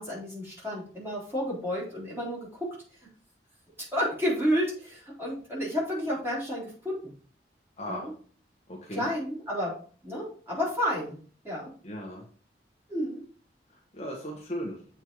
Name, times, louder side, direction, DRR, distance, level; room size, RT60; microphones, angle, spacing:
voice 1, 0.0-2.7 3.9-7.1 7.9-8.1 9.0-9.7 10.0-11.1 11.4-11.7 12.9-13.2, equal, 15° right, -7 dB, 4.0 m, -31 dB
voice 2, 7.8-8.1 8.7-9.1 11.8-12.3 13.9-14.8, equal, 35° left, -1 dB, 1.3 m, -36 dB
7.6 x 4.5 x 4.7 m, 0.44 s
head